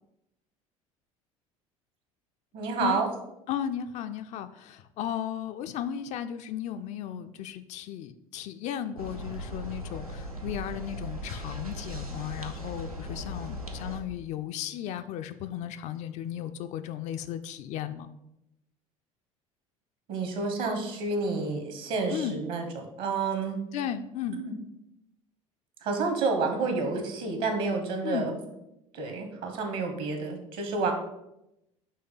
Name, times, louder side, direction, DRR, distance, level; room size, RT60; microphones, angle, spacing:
voice 1, 2.5-3.1 20.1-23.6 24.3-24.5 25.8-28.4 28.9-30.9, right 4 dB, 55° right, 5 dB, 1.2 m, -29 dB
voice 2, 3.5-18.1 22.1-22.4 23.7-24.4 28.0-28.3, left 10 dB, 40° left, 9 dB, 0.4 m, -35 dB
sound 1, 9.0-14.0, equal, 90° right, 0.6 m, -38 dB
5.5 x 3.2 x 5.5 m, 0.86 s
figure-of-eight pair, 65°, 18 cm